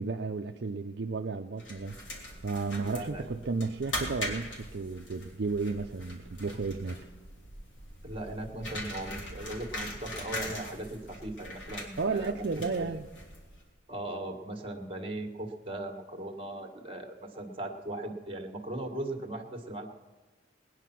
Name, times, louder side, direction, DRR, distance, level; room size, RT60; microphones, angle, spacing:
voice 1, 0.0-2.0 2.4-7.0 12.0-13.1, right 4 dB, 55° right, 4 dB, 0.6 m, -33 dB
sound 1, 1.6-13.7, left 1 dB, 75° left, 3.2 m, -41 dB
voice 2, 2.8-3.3 8.0-12.9 13.9-19.9, right 1 dB, 30° right, 4 dB, 1.6 m, -38 dB
19.5 x 10.0 x 5.9 m, 1.3 s
head